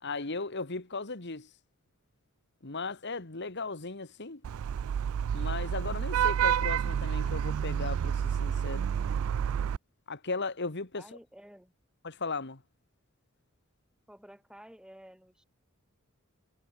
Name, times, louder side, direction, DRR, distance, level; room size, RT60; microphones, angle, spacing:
voice 1, 0.0-1.5 2.6-4.4 5.3-8.8 10.1-11.0 12.0-12.6, left 3 dB, 55° left, 1.9 m, -36 dB
Vehicle horn car horn honking / Traffic noise roadway noise, 4.4-9.8, right 8 dB, 70° right, 0.3 m, -29 dB
voice 2, 11.0-11.7 14.1-15.4, equal, 5° right, 5.4 m, -52 dB
head